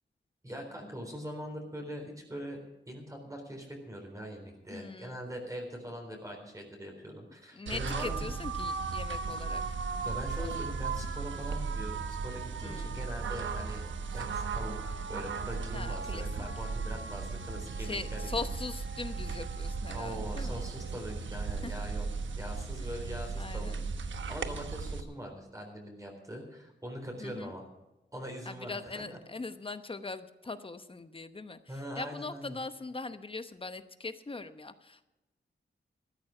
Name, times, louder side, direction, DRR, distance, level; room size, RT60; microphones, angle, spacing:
voice 1, 0.4-2.6 2.9-8.3 9.8-13.8 14.1-18.4 19.9-22.1 22.4-23.8 24.3-27.6 28.1-29.2 31.7-32.6, equal, 15° right, 1 dB, 4.0 m, -42 dB
voice 2, 4.7-5.2 7.6-9.6 10.4-10.7 12.6-13.0 15.7-16.5 17.8-20.6 21.6-21.7 23.4-23.9 27.2-27.5 28.5-35.1, left 3 dB, 30° left, 11 dB, 0.9 m, -41 dB
sound 1, 7.7-25.0, right 4 dB, 85° right, 1.1 m, -36 dB
14.0 x 13.5 x 4.9 m, 1.0 s
wide cardioid pair, 125°, 19 cm